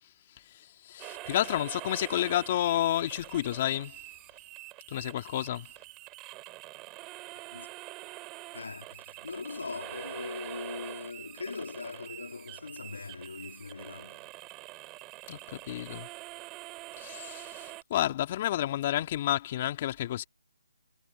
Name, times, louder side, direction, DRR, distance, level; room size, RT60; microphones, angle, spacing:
voice 1, 0.0-4.1 4.9-5.7 15.3-16.1 17.0-20.2, left 13 dB, 35° left, 2.1 m, -31 dB
sound 1, 1.0-17.8, right 21 dB, 20° right, 6.7 m, -45 dB
voice 2, 7.3-7.7 8.5-14.2, left 4 dB, 80° left, 1.9 m, -40 dB
hypercardioid pair, 155°, 0 cm